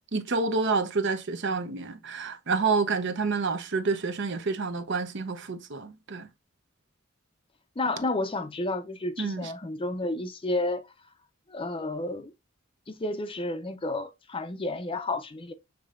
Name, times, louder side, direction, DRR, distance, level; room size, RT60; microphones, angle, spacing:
voice 1, 0.1-6.3 9.2-9.5, right 4 dB, 60° right, 0.7 m, -28 dB
voice 2, 7.8-10.8 11.5-12.3 12.9-15.5, left 2 dB, 25° left, 0.5 m, -31 dB
6.8 x 3.2 x 2.4 m
head